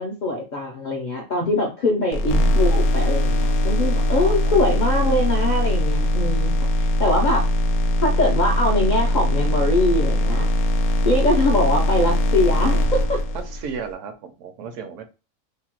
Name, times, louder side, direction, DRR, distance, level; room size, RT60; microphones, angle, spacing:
voice 1, 0.0-7.5 8.0-10.5 11.0-13.2, left 2 dB, 60° left, -1 dB, 0.5 m, -22 dB
sound 1, 2.1-13.8, equal, 80° left, 1.0 m, -21 dB
voice 2, 4.1-4.7 5.0-5.1 13.4-15.0, right 6 dB, 70° right, 8 dB, 0.9 m, -35 dB
2.8 x 2.2 x 2.9 m, 0.31 s
omnidirectional pair, 1.4 m